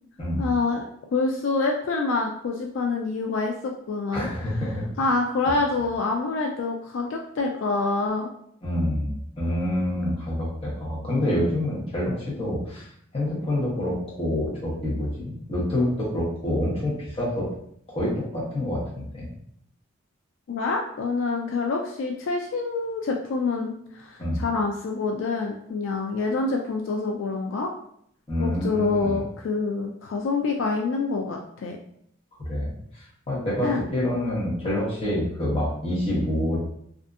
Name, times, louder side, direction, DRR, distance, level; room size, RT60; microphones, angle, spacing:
voice 1, 0.4-0.8 1.1-4.3 5.0-8.3 20.5-27.7 28.4-31.8 33.6-33.8, left 3 dB, 70° left, 2 dB, 0.3 m, -26 dB
voice 2, 4.1-4.9 8.6-12.9 13.1-17.5 17.9-19.3 24.2-24.4 28.3-29.1 32.5-32.8 33.3-36.6, left 1 dB, 30° left, -6 dB, 0.9 m, -27 dB
2.6 x 2.4 x 2.3 m, 0.69 s
head